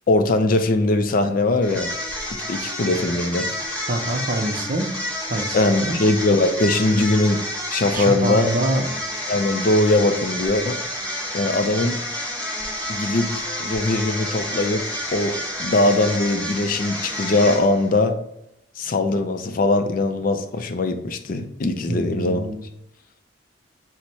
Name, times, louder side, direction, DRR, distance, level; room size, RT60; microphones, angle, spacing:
voice 1, 0.1-1.9 2.5-3.5 5.5-7.4 7.7-8.5 9.3-10.8 11.3-12.0 12.9-14.9 15.1-18.1 18.8-22.4, left 2 dB, 45° left, 8 dB, 0.4 m, -21 dB
sound 1, 1.6-17.9, left 1 dB, 5° left, 1.0 m, -30 dB
voice 2, 3.9-4.9 5.3-5.6 5.8-6.0 7.9-8.9 21.9-22.6, right 1 dB, 45° right, 5 dB, 0.5 m, -25 dB
6.0 x 2.1 x 4.0 m, 0.78 s
head